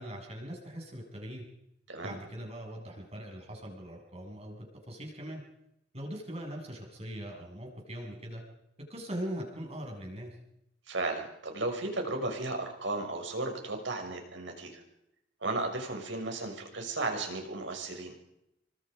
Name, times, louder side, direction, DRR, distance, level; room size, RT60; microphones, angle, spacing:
voice 1, 0.0-1.5 2.0-5.4 5.9-8.4 8.9-10.3, equal, 35° right, 1 dB, 7.3 m, -41 dB
voice 2, 10.9-14.8 15.4-18.1, right 2 dB, 80° right, 3 dB, 6.5 m, -34 dB
28.5 x 25.0 x 5.3 m, 0.82 s
head